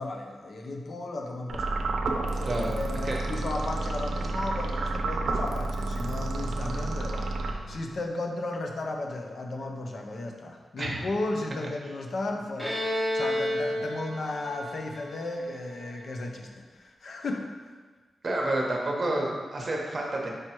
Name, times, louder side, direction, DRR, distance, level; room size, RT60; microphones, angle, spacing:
voice 1, 0.0-1.9 2.3-17.7, left 2 dB, 55° left, 2 dB, 0.6 m, -35 dB
sound 1, 1.5-8.0, right 2 dB, 80° right, 0.5 m, -30 dB
voice 2, 2.4-2.8 3.0-3.2 10.8-11.0 18.2-20.3, right 1 dB, 35° right, -1 dB, 1.0 m, -29 dB
Bowed string instrument, 12.6-16.1, left 1 dB, 10° left, 1.2 m, -31 dB
4.8 x 4.5 x 4.5 m, 1.4 s
wide cardioid pair, 130°, 0 cm